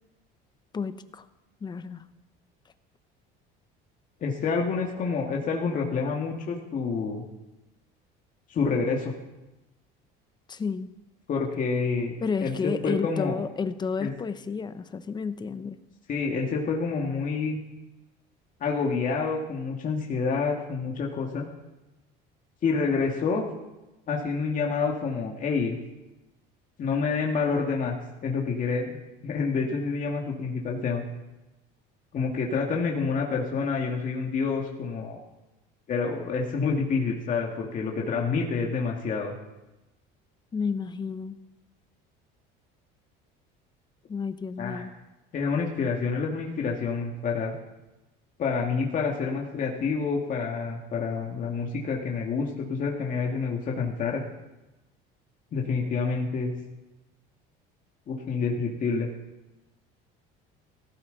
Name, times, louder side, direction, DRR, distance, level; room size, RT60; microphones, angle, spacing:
voice 1, 0.7-1.3 1.6-2.1 10.5-10.9 12.2-15.8 40.5-41.4 44.1-44.9, left 5 dB, 20° left, 12 dB, 0.7 m, -31 dB
voice 2, 4.2-7.2 8.5-9.1 11.3-12.1 12.4-13.3 14.0-14.1 16.1-17.6 18.6-21.4 22.6-23.4 24.1-25.8 26.8-27.9 28.2-29.0 29.2-31.0 32.1-35.2 35.9-39.4 44.6-44.8 45.3-47.5 48.4-54.2 55.5-56.5 58.1-59.1, left 4 dB, 40° left, -1 dB, 2.0 m, -28 dB
16.5 x 13.5 x 4.0 m, 1.0 s
cardioid pair, 125°, 20 cm